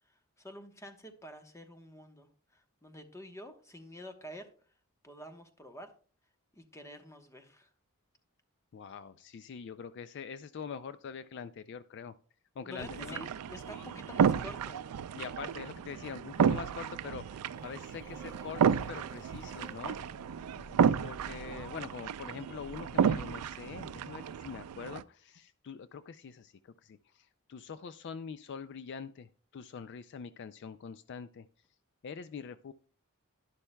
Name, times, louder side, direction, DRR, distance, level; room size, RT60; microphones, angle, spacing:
voice 1, 0.1-4.5 5.0-5.9 6.5-7.7 12.6-14.8, equal, 15° left, 6 dB, 1.0 m, -48 dB
voice 2, 8.7-12.1 12.6-13.2 13.7-13.9 15.2-20.0 20.6-31.5 32.0-32.7, left 6 dB, 50° left, 13 dB, 0.3 m, -44 dB
sound 1, 12.8-25.0, right 7 dB, 90° right, 0.4 m, -32 dB
sound 2, 17.5-24.3, equal, 10° right, 3.9 m, -55 dB
11.5 x 11.0 x 2.2 m, 0.42 s
head